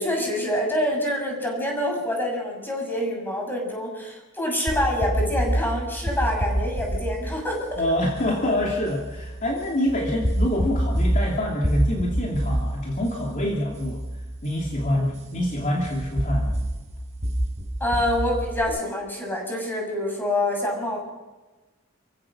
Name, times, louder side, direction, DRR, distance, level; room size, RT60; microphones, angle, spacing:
voice 1, 0.0-7.8 14.9-15.1 17.8-21.0, left 1 dB, 10° left, 0 dB, 7.0 m, -26 dB
sound 1, 4.7-18.6, right 1 dB, 35° right, 5.4 m, -28 dB
voice 2, 7.8-14.0 14.4-16.6, left 1 dB, 35° left, -1 dB, 2.9 m, -26 dB
29.5 x 16.0 x 6.3 m, 1.2 s
head